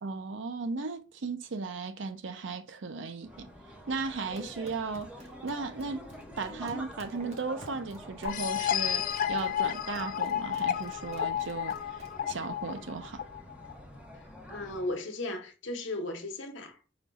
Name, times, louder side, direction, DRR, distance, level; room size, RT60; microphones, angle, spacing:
voice 1, 0.0-3.5 3.9-6.1 6.4-13.2, right 4 dB, 70° right, 0.6 m, -36 dB
sound 1, 3.2-15.0, equal, 5° right, 0.9 m, -47 dB
sound 2, 4.2-12.6, right 1 dB, 35° right, 1.0 m, -54 dB
sound 3, 8.2-13.7, left 10 dB, 45° left, 0.4 m, -31 dB
voice 2, 14.5-16.8, left 2 dB, 75° left, 1.0 m, -36 dB
5.1 x 2.3 x 4.0 m
head